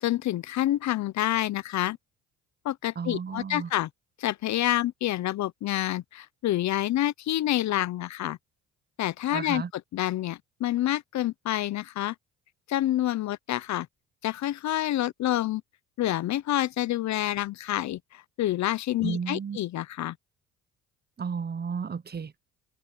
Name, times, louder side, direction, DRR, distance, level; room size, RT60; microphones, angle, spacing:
voice 1, 0.0-2.0 2.6-3.9 4.2-8.4 9.0-12.1 12.7-13.9 14.2-15.6 16.0-20.1, left 14 dB, 55° left, 0.8 m, -28 dB
voice 2, 3.0-3.7 9.3-9.7 19.0-19.6 21.2-22.4, right 6 dB, 30° right, 1.1 m, -33 dB
supercardioid pair, 75°, 33 cm